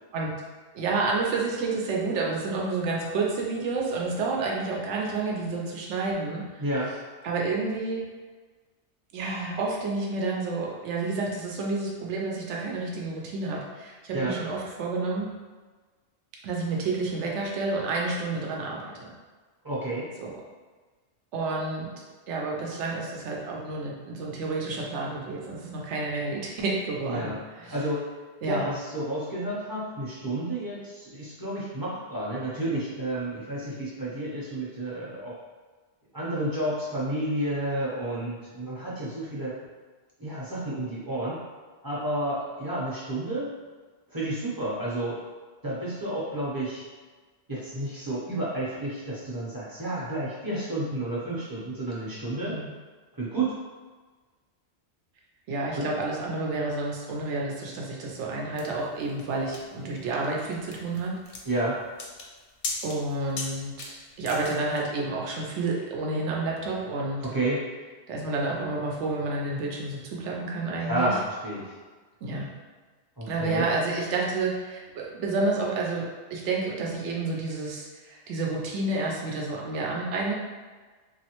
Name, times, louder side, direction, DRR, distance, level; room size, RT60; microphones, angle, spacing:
voice 1, 0.7-6.6 7.2-8.0 9.1-15.3 16.4-19.1 20.2-20.3 21.3-21.9 22.3-27.8 28.4-28.7 52.4-52.7 55.5-61.1 62.8-67.3 68.1-71.1 72.2-72.5 73.3-76.0 76.3-80.3, right 3 dB, 85° right, -2 dB, 0.9 m, -30 dB
voice 2, 6.6-6.9 14.1-14.4 19.6-20.1 27.1-27.4 27.7-28.0 28.4-35.3 36.1-39.5 40.2-41.4 41.8-43.5 44.1-45.2 45.6-46.8 47.5-52.6 53.1-53.5 55.7-55.9 61.4-61.8 67.2-67.6 70.9-71.7 73.2-73.6, right 1 dB, 25° right, -7 dB, 0.6 m, -30 dB
sound 1, 58.6-64.8, left 3 dB, 80° left, 0.9 m, -38 dB
3.0 x 2.4 x 2.9 m, 1.4 s
omnidirectional pair, 1.2 m